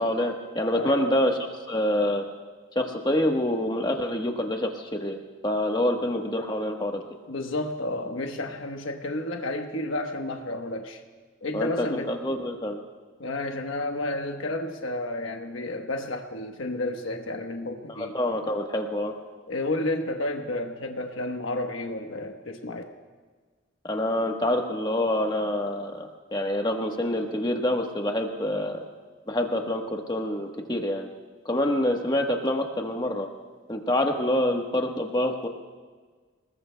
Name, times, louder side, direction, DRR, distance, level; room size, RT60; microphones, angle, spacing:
voice 1, 0.0-2.3 2.7-5.2 5.4-7.0 11.5-12.8 18.0-19.1 23.8-28.8 29.3-31.1 31.4-33.3 33.7-35.5, left 1 dB, 20° left, 3 dB, 1.2 m, -26 dB
voice 2, 0.8-1.1 7.3-11.0 11.4-12.1 13.2-18.1 19.5-22.8, left 2 dB, 75° left, 3 dB, 1.1 m, -31 dB
27.0 x 19.5 x 2.2 m, 1.5 s
head